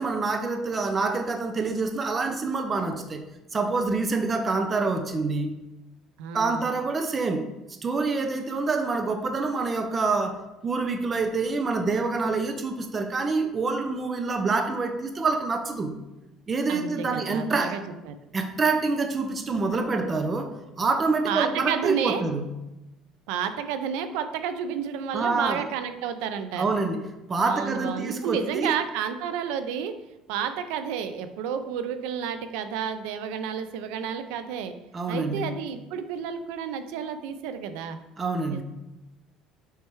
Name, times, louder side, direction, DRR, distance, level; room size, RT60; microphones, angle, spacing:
voice 1, 0.0-3.2 3.5-5.5 6.3-7.5 7.8-15.9 16.5-17.8 18.3-22.5 25.1-25.7 26.6-27.0 27.3-28.7 34.9-35.5 38.2-38.6, right 3 dB, 20° right, 6 dB, 0.5 m, -26 dB
voice 2, 6.2-6.7 16.7-18.2 21.3-22.2 23.3-26.7 27.4-30.0 30.3-34.7 35.1-38.0 38.5-38.6, right 7 dB, 90° right, 10 dB, 0.5 m, -31 dB
6.5 x 3.3 x 4.6 m, 0.97 s
cardioid pair, 165°, 0 cm